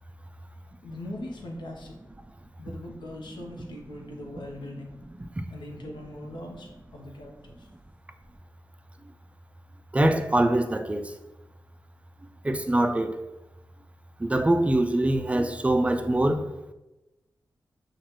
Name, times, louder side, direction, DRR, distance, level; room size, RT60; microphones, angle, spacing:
voice 1, 0.8-2.0 2.6-5.0 5.5-7.7, left 1 dB, 85° left, 0.8 m, -40 dB
voice 2, 9.9-11.1 12.4-13.2 14.2-16.5, right 1 dB, 15° right, 0.3 m, -23 dB
6.2 x 2.4 x 3.0 m
wide cardioid pair, 95°, 8 cm